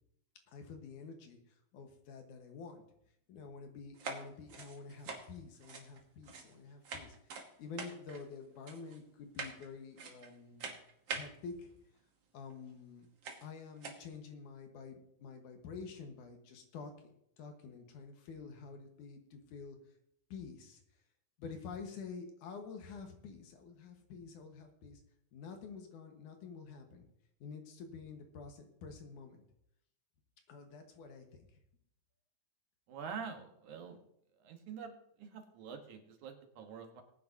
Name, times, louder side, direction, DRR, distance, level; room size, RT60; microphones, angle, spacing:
voice 1, 0.5-1.4 1.7-2.8 3.3-10.7 11.1-11.7 12.3-13.1 13.4-19.8 20.3-20.8 21.4-25.0 25.3-27.1 27.4-29.4 30.5-31.5, left 5 dB, 80° left, 4 dB, 2.9 m, -49 dB
sound 1, 3.9-6.6 6.8-7.5 7.8-8.2 8.7-9.0 9.3-9.7 10.0-10.3 10.6-11.3 12.5-12.6 13.2-13.4 13.8-14.1, right 4 dB, 50° right, 1.5 m, -44 dB
voice 2, 32.9-34.0 34.4-34.9 35.2-37.0, right 6 dB, 75° right, 4 dB, 2.7 m, -46 dB
19.5 x 9.5 x 2.8 m, 0.75 s
omnidirectional pair, 3.5 m